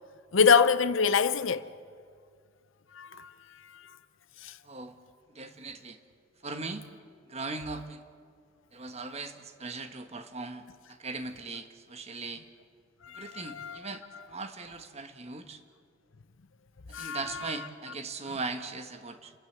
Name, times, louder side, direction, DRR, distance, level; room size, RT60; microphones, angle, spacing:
voice 1, 0.3-1.7 2.9-3.3 3.7-3.9 4.4-4.6 13.0-13.8 16.9-17.5, left 5 dB, 80° left, 0.7 m, -25 dB
voice 2, 4.6-5.0 5.3-6.0 6.4-6.9 7.3-8.0 8.7-12.4 13.1-15.6 16.9-19.3, right 3 dB, 35° right, 1.3 m, -39 dB
30.0 x 12.0 x 8.0 m
head